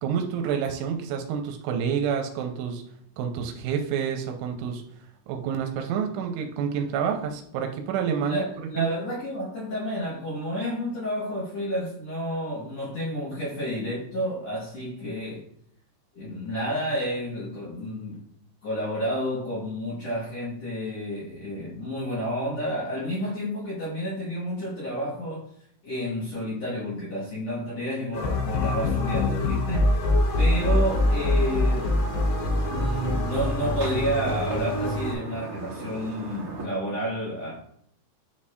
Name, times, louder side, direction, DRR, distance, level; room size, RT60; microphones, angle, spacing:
voice 1, 0.0-2.8 3.2-4.8 5.3-8.5 8.8-8.9, right 7 dB, 90° right, 3.0 m, -28 dB
voice 2, 8.2-15.5 16.1-18.3 18.6-25.5 25.8-30.0 30.4-32.0 32.6-37.6, equal, 90° left, 1.4 m, -30 dB
sound 1, 28.1-35.1, left 1 dB, 70° left, 2.6 m, -24 dB
sound 2, 30.5-36.6, right 2 dB, 50° right, 1.0 m, -38 dB
10.0 x 4.3 x 2.4 m
omnidirectional pair, 5.4 m